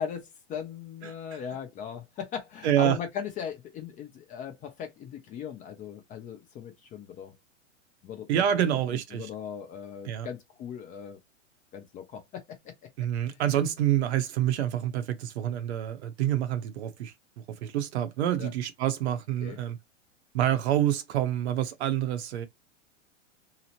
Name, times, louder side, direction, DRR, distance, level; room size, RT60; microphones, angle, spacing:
voice 1, 0.0-7.3 8.0-8.4 9.1-11.2 11.7-12.9 13.3-13.4 18.4-18.5 19.4-19.6, left 7 dB, 20° left, 0.5 m, -38 dB
voice 2, 2.6-3.0 8.3-9.3 10.1-10.3 13.0-17.1 17.5-19.8 20.3-22.5, right 11 dB, 60° right, 0.7 m, -27 dB
2.8 x 2.0 x 2.8 m
hypercardioid pair, 120°, 38 cm